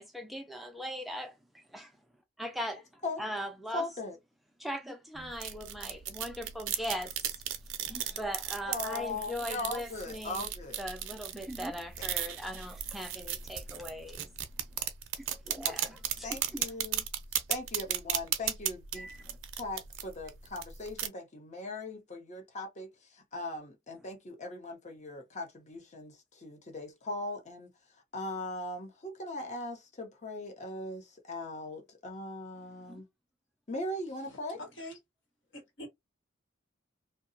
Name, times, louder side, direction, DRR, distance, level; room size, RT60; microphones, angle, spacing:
voice 1, 0.0-1.9 2.4-2.8 3.2-3.9 4.6-7.1 7.9-10.5 10.8-14.3 15.3-16.0 16.5-16.6 18.9-19.4 32.9-33.0, equal, ahead, 0.3 m, -39 dB
voice 2, 3.7-4.2 8.7-10.8 12.0-12.1 15.6-15.9 16.2-17.0 17.5-19.1 19.6-27.7 28.1-33.0 33.7-34.6, left 2 dB, 35° left, 0.7 m, -39 dB
sound 1, 5.2-21.1, right 10 dB, 85° right, 0.5 m, -36 dB
voice 3, 34.3-35.0 35.5-35.9, left 1 dB, 65° left, 1.2 m, -45 dB
2.7 x 2.2 x 2.6 m
head